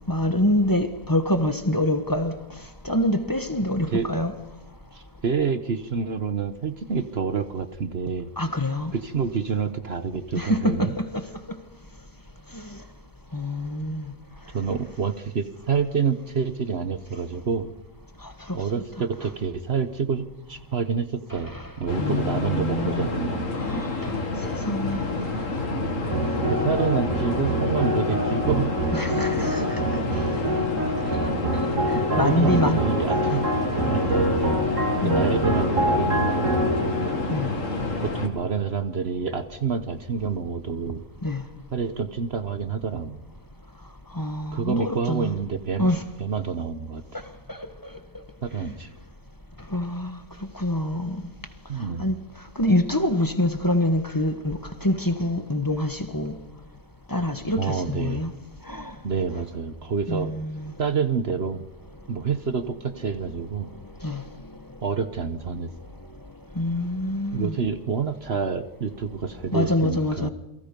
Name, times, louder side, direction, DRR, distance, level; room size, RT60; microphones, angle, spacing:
voice 1, 0.1-2.3 2.8-4.3 8.4-8.9 10.3-11.2 12.5-12.8 13.3-14.1 18.2-18.6 21.3-21.6 22.0-23.1 23.6-24.2 24.6-25.0 28.9-29.8 31.2-31.3 31.9-32.8 35.0-35.4 37.3-37.5 41.2-41.4 44.1-45.3 45.8-46.1 47.5-47.7 48.7-48.8 49.7-51.2 52.0-52.1 52.5-56.4 57.1-58.3 58.7-58.9 60.1-60.7 64.0-64.2 66.5-67.5 69.5-70.3, left 1 dB, 15° left, 1.3 m, -26 dB
voice 2, 4.9-8.3 8.9-10.9 14.5-17.7 18.5-23.5 25.7-26.1 26.4-28.7 31.9-33.5 33.9-34.7 35.0-37.0 38.0-41.0 41.7-43.2 44.5-45.9 46.2-47.2 48.4-48.9 51.7-52.1 57.6-58.2 59.0-60.3 60.8-61.7 62.1-63.7 64.8-65.7 67.3-70.3, right 6 dB, 55° right, 1.3 m, -28 dB
sound 1, 21.9-38.3, left 3 dB, 90° left, 2.6 m, -29 dB
sound 2, 26.1-38.6, equal, 80° right, 2.8 m, -26 dB
28.5 x 23.5 x 5.4 m
omnidirectional pair, 1.3 m